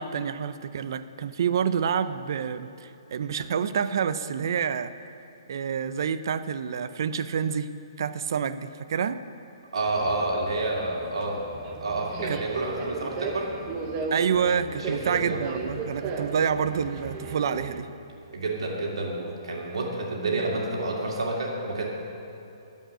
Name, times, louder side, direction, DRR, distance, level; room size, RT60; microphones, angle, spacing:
voice 1, 0.0-4.9 5.5-7.7 8.0-9.2 12.3-12.4 14.1-17.9, right 7 dB, 50° right, 12 dB, 0.5 m, -28 dB
voice 2, 9.7-11.4 11.8-13.5 14.7-15.4 18.3-21.9, right 2 dB, 85° right, -2 dB, 2.5 m, -29 dB
Subway metro underground, 9.9-17.8, right 4 dB, 20° right, 0.9 m, -36 dB
13.5 x 5.4 x 8.8 m, 2.8 s
hypercardioid pair, 170°, 3 cm